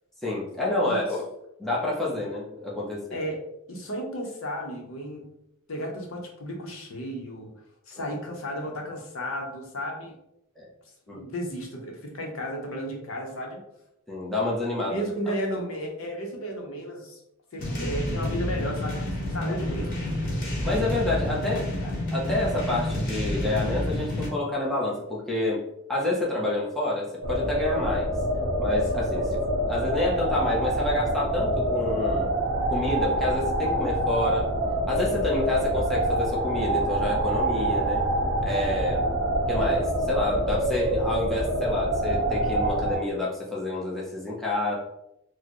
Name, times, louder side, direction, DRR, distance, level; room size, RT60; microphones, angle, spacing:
voice 1, 0.2-1.3 1.6-3.2 7.9-8.0 10.6-10.7 11.1-11.2 14.1-15.0 20.6-25.6 25.9-28.1 28.6-32.3 32.7-34.5 34.9-38.1 38.4-39.1 39.5-44.8, left 2 dB, ahead, -6 dB, 0.7 m, -28 dB
voice 2, 3.7-5.3 5.7-7.5 7.9-10.2 11.1-13.6 14.9-17.2 17.5-20.0 28.9-29.2, equal, 65° left, 1 dB, 0.8 m, -34 dB
sound 1, 17.6-24.3, left 1 dB, 40° left, 1.0 m, -29 dB
sound 2, 27.2-43.0, right 1 dB, 50° right, 0.8 m, -26 dB
4.3 x 2.1 x 3.0 m, 0.80 s
head